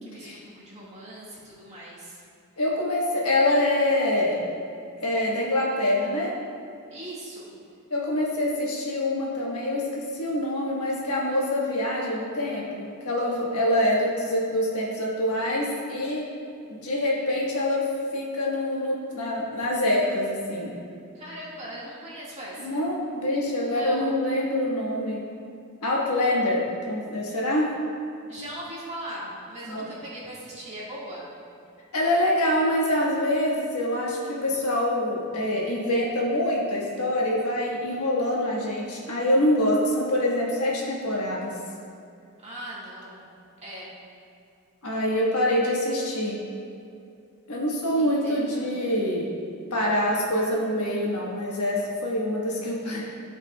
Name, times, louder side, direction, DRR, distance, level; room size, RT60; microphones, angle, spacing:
voice 1, 0.0-2.2 6.9-7.6 21.1-22.8 23.6-24.1 28.3-31.3 42.4-43.3 43.6-43.9 48.0-48.7, right 1 dB, 30° right, -7 dB, 1.7 m, -39 dB
voice 2, 2.6-4.4 5.0-6.4 7.9-16.2 16.7-20.7 22.6-25.2 25.8-27.7 29.7-29.9 31.9-41.5 44.8-46.4 47.5-49.3 49.7-53.0, left 1 dB, 85° left, -4 dB, 1.3 m, -25 dB
13.0 x 4.8 x 2.3 m, 2.5 s
head